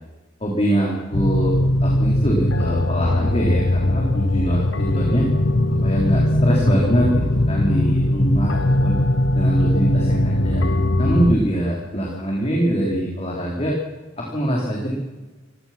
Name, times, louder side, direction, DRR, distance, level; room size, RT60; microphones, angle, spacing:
voice 1, 0.4-1.5 1.8-5.3 5.8-9.0 9.3-10.7 11.0-13.7 14.2-14.9, right 1 dB, 30° left, -2 dB, 4.3 m, -23 dB
sound 1, 1.1-11.3, left 1 dB, 75° left, 1.3 m, -20 dB
26.0 x 18.0 x 6.2 m, 1.2 s
head